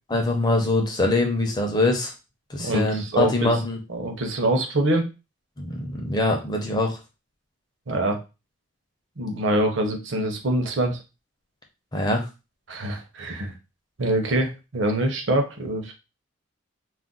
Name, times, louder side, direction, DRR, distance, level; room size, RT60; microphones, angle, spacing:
voice 1, 0.1-2.1 2.5-3.8 5.6-7.0 11.9-12.3, left 2 dB, 20° left, 2 dB, 0.5 m, -23 dB
voice 2, 2.6-3.5 3.9-5.1 7.9-8.2 9.2-11.0 12.7-13.5 14.0-15.9, right 1 dB, 60° right, 4 dB, 0.7 m, -24 dB
2.4 x 2.2 x 3.7 m, 0.28 s
head